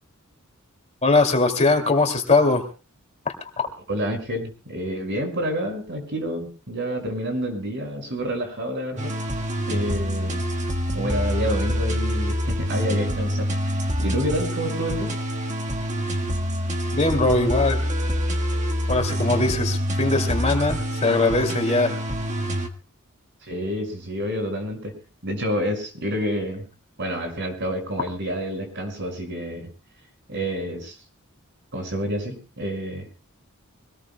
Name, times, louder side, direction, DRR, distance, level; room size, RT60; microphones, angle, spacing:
voice 1, 1.0-2.7 3.3-3.7 16.9-17.8 18.9-22.0, left 3 dB, 30° left, 4 dB, 2.4 m, -21 dB
voice 2, 3.9-9.1 9.7-10.4 10.9-13.5 14.0-15.1 19.4-19.6 23.4-24.9 25.2-26.6 27.0-29.7 30.3-31.0 31.7-33.1, equal, 55° right, 4 dB, 5.5 m, -28 dB
sound 1, 9.0-22.7, equal, 35° right, 1.5 m, -26 dB
24.5 x 19.0 x 2.2 m, 0.33 s
head